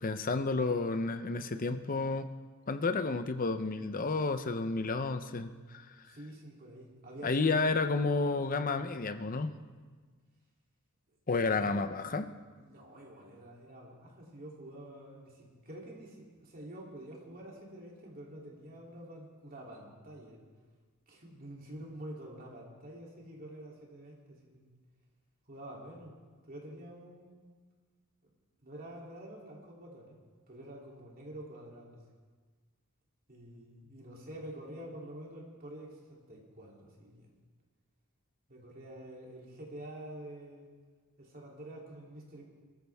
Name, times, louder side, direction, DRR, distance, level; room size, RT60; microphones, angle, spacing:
voice 1, 0.0-2.3 2.7-5.8 7.2-9.5 11.3-12.3, left 3 dB, 40° left, 9 dB, 0.7 m, -31 dB
voice 2, 6.0-8.0 12.6-20.4 21.1-24.7 25.5-26.1 26.5-27.5 28.6-30.2 30.5-32.0 33.3-37.3 38.5-40.7 41.2-42.4, right 1 dB, 45° right, -2 dB, 3.1 m, -48 dB
21.5 x 14.0 x 3.5 m, 1.4 s
head